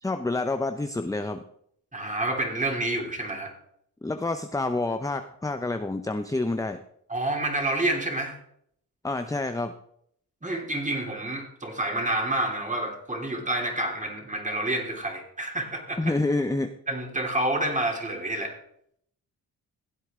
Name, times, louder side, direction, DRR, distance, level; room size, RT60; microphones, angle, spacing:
voice 1, 0.0-1.4 4.0-6.8 9.0-9.7 16.0-16.7, left 2 dB, 10° left, 8 dB, 0.7 m, -28 dB
voice 2, 1.9-3.5 7.1-8.4 10.4-16.1 16.9-18.5, right 1 dB, 20° right, 2 dB, 3.2 m, -28 dB
16.0 x 8.2 x 3.7 m, 0.68 s
cardioid pair, 60°, 39 cm